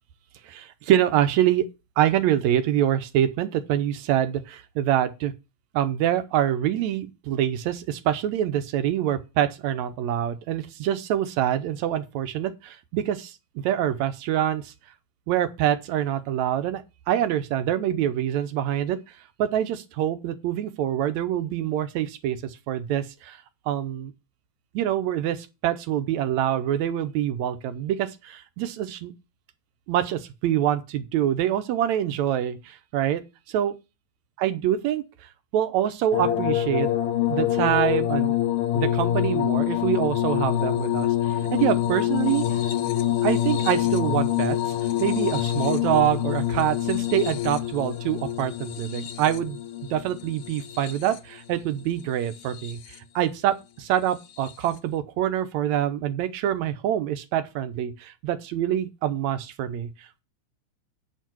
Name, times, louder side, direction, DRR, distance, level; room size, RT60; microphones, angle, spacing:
voice 1, 0.4-1.7 2.0-5.3 5.7-13.4 13.6-14.7 15.3-19.0 19.4-23.4 23.7-24.1 24.7-29.1 29.9-33.2 33.5-33.7 34.4-36.9 37.2-38.4 38.7-42.5 43.2-44.6 45.0-49.6 49.9-60.2, right 11 dB, 75° right, 2.0 m, -25 dB
sound 1, 36.1-51.4 52.2-52.9 54.4-54.5, left 12 dB, 70° left, 1.5 m, -26 dB
8.8 x 4.7 x 6.1 m
omnidirectional pair, 3.5 m